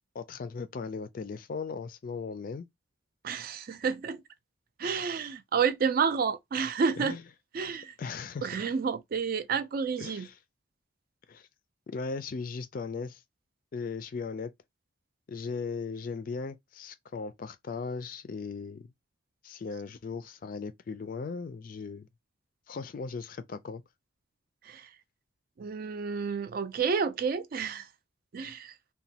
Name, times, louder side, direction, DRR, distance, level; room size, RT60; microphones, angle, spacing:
voice 1, 0.1-2.7 7.0-7.2 8.0-8.7 10.0-10.4 11.3-11.5 11.9-13.2 13.7-14.5 15.3-18.9 19.4-22.1 22.7-23.8, left 4 dB, 45° left, 0.3 m, -37 dB
voice 2, 3.2-4.2 4.8-7.2 7.5-7.9 8.4-10.3 24.7-24.9 25.6-27.9 28.3-28.7, right 6 dB, 45° right, 0.3 m, -30 dB
3.0 x 2.2 x 2.7 m
head